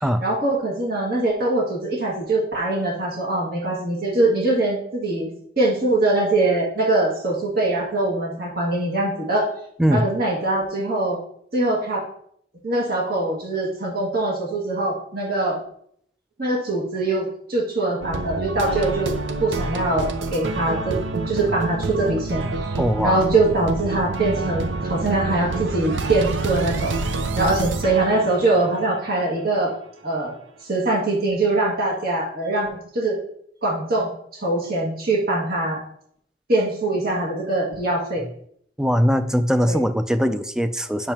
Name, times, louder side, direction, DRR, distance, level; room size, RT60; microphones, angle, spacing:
voice 1, 0.2-5.3 5.6-9.5 9.9-11.2 11.5-12.0 12.6-15.6 16.4-19.1 19.4-21.0 21.3-26.9 27.3-29.7 30.0-30.3 30.7-33.2 33.6-35.8 36.5-38.2 39.6-39.8, right 2 dB, 55° right, -3 dB, 2.0 m, -23 dB
sound 1, 18.0-29.1, right 3 dB, 80° right, 0.7 m, -27 dB
voice 2, 22.8-23.2 38.8-41.1, equal, 5° right, 9 dB, 0.3 m, -21 dB
8.7 x 6.4 x 2.9 m, 0.66 s
head